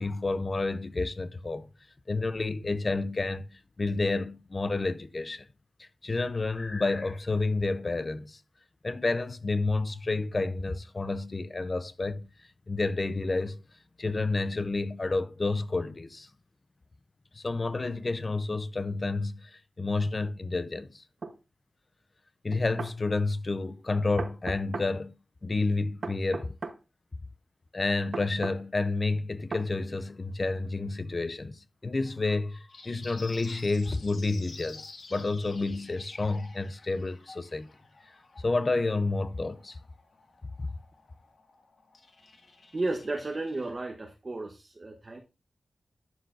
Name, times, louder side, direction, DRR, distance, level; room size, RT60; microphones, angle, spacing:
voice 1, 0.0-1.7 2.1-3.5 3.8-5.5 5.8-8.4 8.8-12.3 12.7-13.6 14.0-16.3 17.4-19.5 19.8-21.0 22.4-25.1 25.4-26.6 27.7-37.7 38.3-39.8, left 3 dB, 30° left, 0.5 m, -30 dB
sound 1, 21.2-21.4 22.5-23.0 24.2-24.9 26.0-26.8 28.1-28.6 29.5-29.7, right 4 dB, 55° right, 0.9 m, -36 dB
sound 2, 32.7-43.7, left 4 dB, 80° left, 1.8 m, -52 dB
voice 2, 42.7-45.2, right 2 dB, 35° right, 0.9 m, -33 dB
11.5 x 6.7 x 2.5 m
wide cardioid pair, 150°, 0 cm